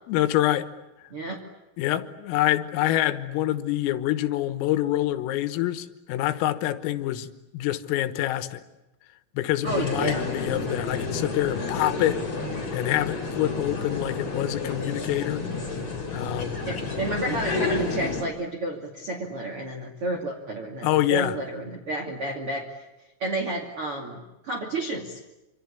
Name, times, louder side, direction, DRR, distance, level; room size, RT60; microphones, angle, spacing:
voice 1, 0.1-0.7 1.8-7.3 7.5-8.6 9.4-12.2 12.7-15.4 16.1-16.6 20.8-21.4, left 14 dB, 85° left, 11 dB, 3.8 m, -26 dB
voice 2, 1.1-1.4 9.6-10.3 16.7-22.8 23.2-25.2, right 2 dB, 40° right, 2 dB, 2.3 m, -31 dB
sound 1, 9.7-18.2, left 4 dB, 25° left, 4.7 m, -30 dB
27.0 x 26.0 x 8.4 m, 0.97 s
omnidirectional pair, 5.9 m